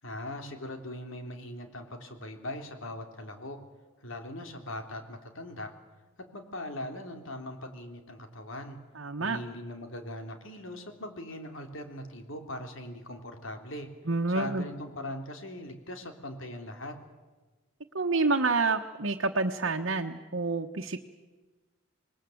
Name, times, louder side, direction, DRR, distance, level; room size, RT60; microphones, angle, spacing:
voice 1, 0.0-3.6 4.0-5.7 6.2-8.8 9.2-13.9 14.3-17.0, left 1 dB, 75° left, 5 dB, 3.3 m, -40 dB
voice 2, 8.9-9.4 14.1-14.6 17.9-21.0, right 3 dB, 70° right, 1 dB, 1.2 m, -28 dB
27.0 x 20.5 x 7.9 m, 1.3 s
head